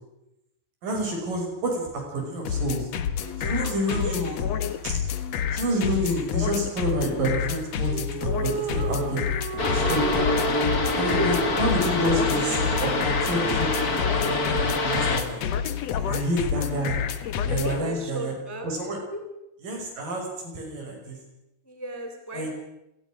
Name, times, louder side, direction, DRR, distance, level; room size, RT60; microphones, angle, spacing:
voice 1, 0.8-2.9 3.4-4.4 4.8-5.0 5.5-10.0 11.0-15.4 16.0-17.0 17.4-18.4 18.6-19.0 19.6-21.2 22.3-22.5, right 1 dB, 60° right, 1 dB, 7.5 m, -29 dB
sound 1, 2.4-17.8, left 8 dB, 60° left, 1.8 m, -28 dB
voice 2, 3.2-3.6 3.9-4.1 11.0-11.5 16.0-16.1 17.5-18.7 19.1-19.2 21.7-22.5, equal, 5° left, 4 dB, 2.8 m, -33 dB
sound 2, 7.9-13.3, right 9 dB, 90° right, 3.6 m, -35 dB
sound 3, 9.6-15.2, left 2 dB, 30° left, 2.0 m, -26 dB
28.0 x 19.5 x 6.3 m, 0.89 s
omnidirectional pair, 4.4 m